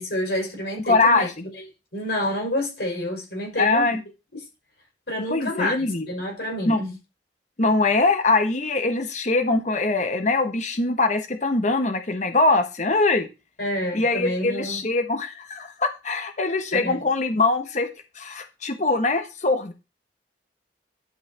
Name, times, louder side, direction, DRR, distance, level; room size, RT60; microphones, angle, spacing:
voice 1, 0.0-1.3 1.5-1.6 1.9-4.0 5.1-7.0 13.6-14.8 16.7-17.0, left 1 dB, 65° left, 5.4 m, -28 dB
voice 2, 0.9-1.4 3.6-4.0 5.3-6.1 6.6-6.8 7.6-13.3 13.9-17.9 18.2-19.7, left 3 dB, 40° left, 1.1 m, -22 dB
11.5 x 5.6 x 4.2 m
head